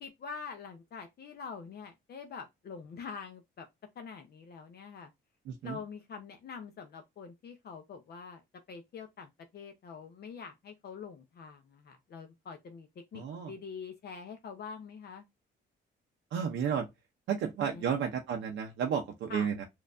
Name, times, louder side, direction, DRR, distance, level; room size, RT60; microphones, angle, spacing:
voice 1, 0.0-3.7 4.0-5.1 5.6-8.4 8.7-15.2 17.7-18.1 19.3-19.5, left 6 dB, 55° left, 0.6 m, -45 dB
voice 2, 5.5-5.8 13.1-13.5 16.3-16.9 17.3-19.6, right 7 dB, 75° right, 0.6 m, -32 dB
4.3 x 2.4 x 2.5 m
cardioid pair, 90°, 20 cm